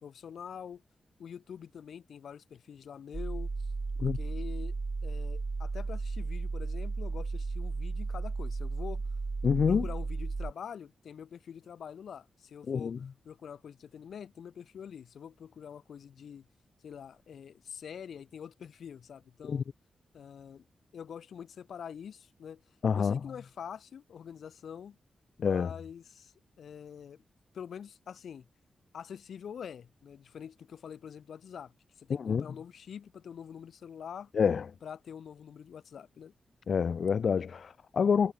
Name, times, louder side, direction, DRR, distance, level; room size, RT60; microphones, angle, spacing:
voice 1, 0.0-0.8 1.2-3.7 4.0-4.8 5.0-9.0 9.7-12.9 13.3-16.5 16.8-19.6 20.1-20.6 20.9-22.6 23.0-25.0 25.4-27.2 27.5-28.5 28.9-34.3 34.8-36.3, left 8 dB, 80° left, 2.0 m, -45 dB
sound 1, 3.1-10.5, right 3 dB, 35° right, 0.6 m, -34 dB
voice 2, 9.4-9.8 12.7-13.0 19.5-19.6 22.8-23.2 25.4-25.7 32.1-32.5 34.3-34.7 36.7-38.3, left 6 dB, 65° left, 0.3 m, -27 dB
cardioid pair, 90°, 0 cm